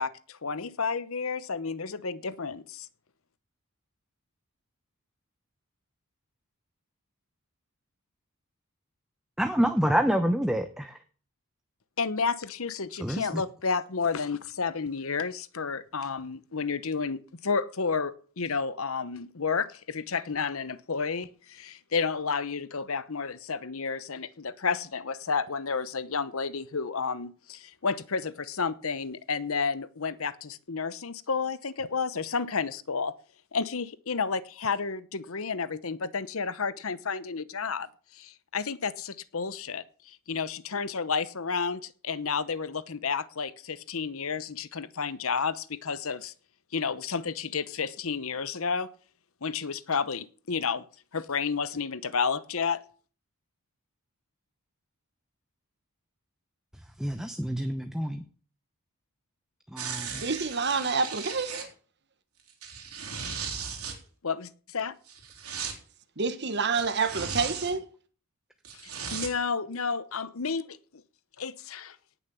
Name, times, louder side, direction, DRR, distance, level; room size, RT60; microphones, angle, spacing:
voice 1, 0.0-2.9 12.0-33.1 33.5-46.3 46.7-48.9 49.4-50.8 51.1-52.8 64.2-65.0 69.1-70.8 71.4-72.0, left 5 dB, 70° left, 0.9 m, -31 dB
voice 2, 9.4-11.0 13.0-13.4 57.0-58.2 59.7-60.2, equal, ahead, 0.8 m, -27 dB
sound 1, 59.8-61.7 62.5-64.0 65.1-65.8 66.7-67.7 68.6-69.3 69.9-70.0, right 6 dB, 85° right, 4.0 m, -37 dB
voice 3, 60.1-61.7 66.2-67.8, right 4 dB, 50° right, 1.3 m, -28 dB
18.0 x 7.0 x 7.0 m
head